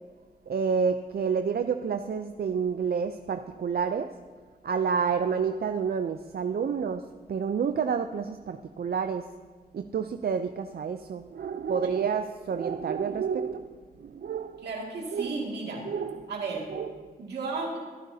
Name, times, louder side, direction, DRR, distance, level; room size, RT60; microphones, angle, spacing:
voice 1, 0.5-4.1 4.6-7.0 7.3-9.3 9.7-13.7 14.0-14.7 15.1-15.4 15.8-16.3 16.7-17.1, right 6 dB, 70° right, 8 dB, 0.5 m, -29 dB
voice 2, 14.6-15.9 16.3-16.7 17.2-17.8, right 3 dB, 85° right, -2 dB, 2.3 m, -34 dB
23.0 x 10.5 x 2.8 m, 1.5 s
cardioid pair, 50°, 17 cm